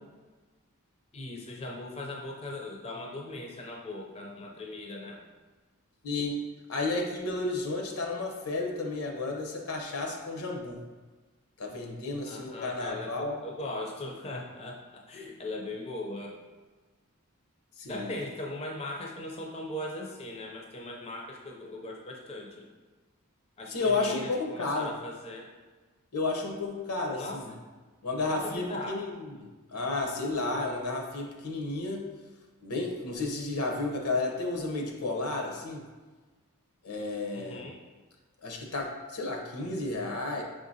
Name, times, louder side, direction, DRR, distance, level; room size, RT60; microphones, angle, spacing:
voice 1, 1.1-5.2 12.3-16.4 17.9-22.7 23.6-25.5 27.1-27.4 28.3-29.0 37.3-37.8, left 1 dB, 30° left, 0 dB, 0.4 m, -39 dB
voice 2, 6.0-6.4 6.7-10.8 11.6-13.4 17.8-18.2 23.7-24.9 26.1-27.5 28.0-32.0 32.6-35.8 36.8-37.6 38.4-40.4, left 3 dB, 80° left, 2 dB, 0.7 m, -32 dB
5.3 x 3.7 x 2.7 m, 1.3 s
head